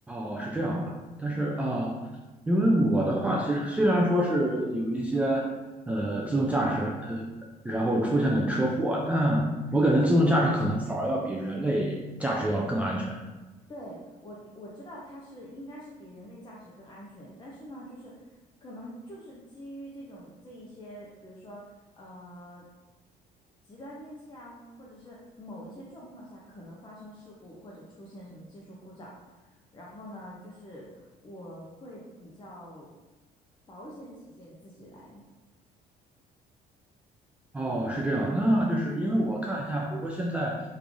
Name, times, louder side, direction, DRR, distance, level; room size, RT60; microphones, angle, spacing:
voice 1, 0.1-2.0 2.5-5.6 5.9-7.3 7.6-13.2 37.5-40.6, right 1 dB, 10° right, -2 dB, 0.3 m, -26 dB
voice 2, 13.7-18.3 18.6-22.6 23.6-32.9 33.7-35.2, equal, 25° left, -5 dB, 0.6 m, -45 dB
3.2 x 2.5 x 3.6 m, 1.2 s
cardioid pair, 110°, 17 cm